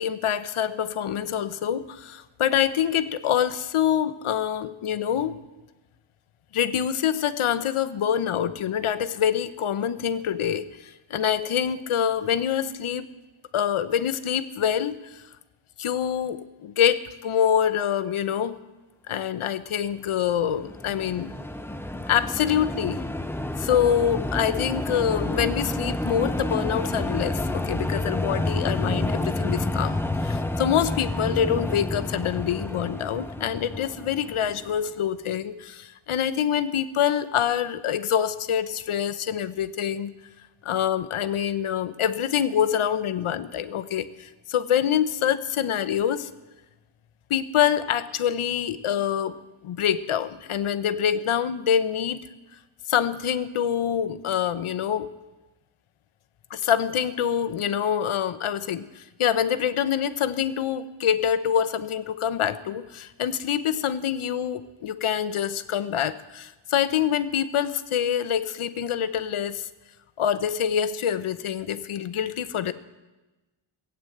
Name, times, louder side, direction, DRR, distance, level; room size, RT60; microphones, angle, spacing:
voice 1, 0.0-5.4 6.5-13.1 13.5-15.2 15.8-18.6 19.1-21.3 22.1-23.0 23.6-40.2 40.6-46.3 47.3-49.4 49.6-52.2 52.9-55.1 56.5-69.7 70.2-72.7, left 9 dB, 90° left, 12 dB, 0.8 m, -25 dB
sound 1, 20.3-34.8, left 1 dB, 5° left, 0.5 m, -29 dB
17.0 x 8.9 x 7.8 m, 1.1 s
wide cardioid pair, 180°, 48 cm